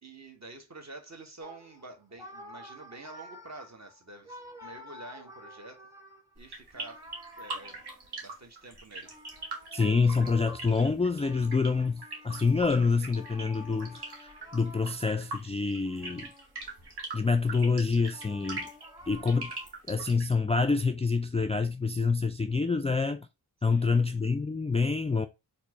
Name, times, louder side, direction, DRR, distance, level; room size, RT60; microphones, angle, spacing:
voice 1, 0.0-5.9 6.3-7.1 7.4-7.9 8.2-9.1 23.7-24.0, right 3 dB, 40° right, 1.4 m, -48 dB
sound 1, 1.4-8.4 9.0-15.3 15.8-17.0 17.4-19.7, left 1 dB, 10° right, 1.1 m, -50 dB
sound 2, 6.4-20.3, right 2 dB, 70° right, 1.5 m, -41 dB
voice 2, 9.7-16.3 17.1-18.7 19.1-19.5 19.9-23.3 23.6-25.3, left 4 dB, 15° left, 0.3 m, -27 dB
4.3 x 2.6 x 3.0 m
cardioid pair, 45°, 41 cm